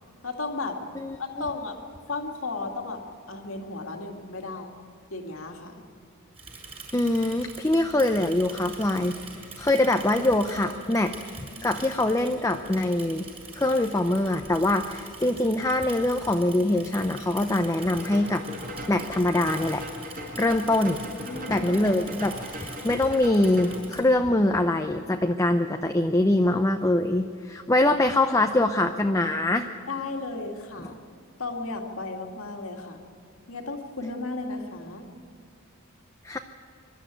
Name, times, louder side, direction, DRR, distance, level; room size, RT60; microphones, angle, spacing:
voice 1, 0.2-0.8 1.2-1.8 2.1-4.7 5.1-5.8 21.2-21.7 29.9-31.1 31.4-33.0 33.5-35.1, left 3 dB, 75° left, 3 dB, 2.3 m, -34 dB
voice 2, 1.0-1.5 6.9-9.2 9.6-11.1 11.6-13.3 13.5-18.4 18.9-19.9 20.4-21.0 21.5-29.7 30.8-30.9 36.2-36.4, left 1 dB, 15° left, 6 dB, 0.6 m, -23 dB
Bicycle / Mechanisms, 6.3-24.0, right 3 dB, 30° right, 6.3 m, -44 dB
sound 1, 17.8-23.7, left 1 dB, 45° right, 5.1 m, -39 dB
23.0 x 12.5 x 9.2 m, 2.4 s
head